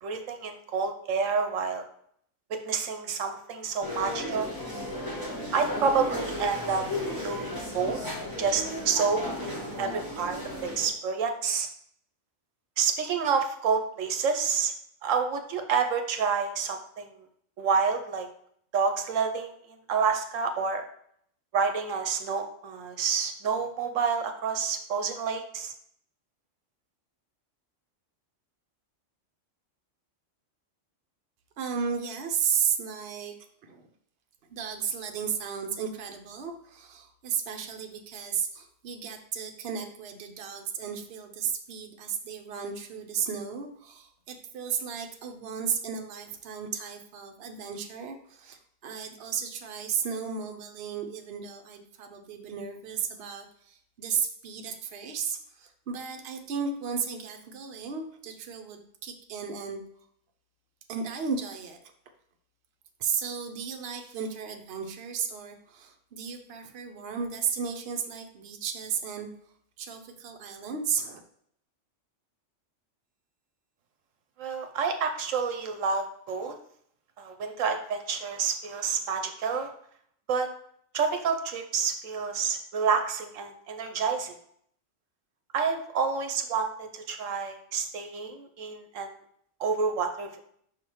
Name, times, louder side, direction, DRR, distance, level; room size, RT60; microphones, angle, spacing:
voice 1, 0.0-1.8 2.6-4.5 5.5-6.8 7.2-8.0 8.4-11.7 12.8-14.7 15.0-17.3 17.6-18.3 18.7-20.8 21.5-25.7 74.4-76.6 77.2-79.7 80.3-80.5 80.9-84.3 85.5-89.1 89.6-90.4, right 5 dB, 75° right, 6 dB, 1.1 m, -29 dB
sound 1, 3.8-10.9, left 1 dB, 15° left, 1.6 m, -35 dB
voice 2, 31.6-33.3 33.6-33.9 34.5-59.8 60.9-61.8 63.0-69.3 69.8-71.2, right 7 dB, 55° right, 4 dB, 0.9 m, -34 dB
5.7 x 3.7 x 4.5 m, 0.66 s
omnidirectional pair, 1.4 m